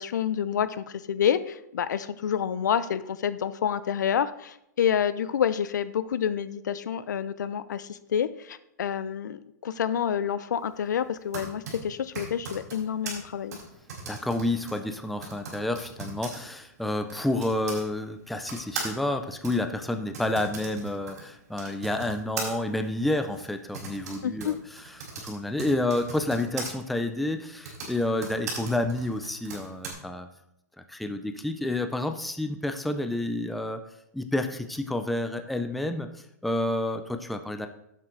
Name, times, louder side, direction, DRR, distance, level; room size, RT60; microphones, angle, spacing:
voice 1, 0.0-13.6 24.2-24.5, left 8 dB, 85° left, 15 dB, 0.7 m, -28 dB
Typing, 11.0-17.9 18.4-26.7 27.5-29.9, right 4 dB, 65° right, 4.3 m, -39 dB
voice 2, 14.0-30.3 30.9-33.8 34.1-37.7, left 1 dB, ahead, 7 dB, 0.4 m, -29 dB
10.5 x 7.7 x 3.8 m, 0.80 s
hypercardioid pair, 170°, 9 cm